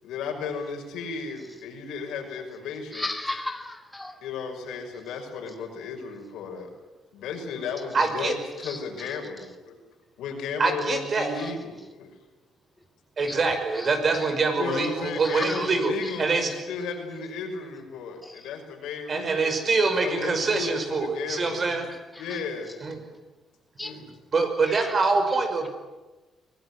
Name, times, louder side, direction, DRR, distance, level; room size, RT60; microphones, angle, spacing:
voice 1, 0.0-3.1 4.2-6.7 7.1-9.7 10.2-12.1 14.6-19.6 20.0-21.8 22.2-22.7 23.8-24.1, left 5 dB, 85° left, 3 dB, 5.8 m, -34 dB
voice 2, 2.9-4.1 8.6-8.8 13.3-13.4 13.8-13.9 14.1-14.3 15.2-15.6 18.2-18.3 23.8-23.9 24.7-24.9, left 2 dB, 10° left, 4 dB, 2.4 m, -34 dB
voice 3, 7.9-8.3 10.6-11.3 13.2-15.9 16.2-16.5 19.1-21.8 22.8-23.0 24.3-25.7, right 4 dB, 45° right, 6 dB, 5.7 m, -24 dB
23.5 x 19.0 x 9.8 m, 1.2 s
cardioid pair, 90°, 0 cm